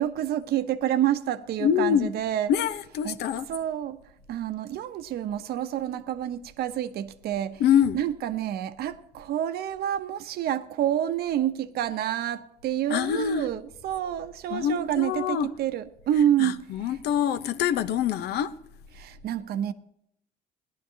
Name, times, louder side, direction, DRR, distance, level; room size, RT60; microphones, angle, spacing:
voice 1, 0.0-4.0 4.3-17.0 18.9-19.7, right 11 dB, 70° right, 0.9 m, -28 dB
voice 2, 1.6-2.1 2.5-3.5 7.6-8.0 12.9-13.5 14.5-15.5 16.1-18.5, left 9 dB, 75° left, 0.8 m, -25 dB
17.0 x 11.5 x 2.8 m
cardioid pair, 110°, 17 cm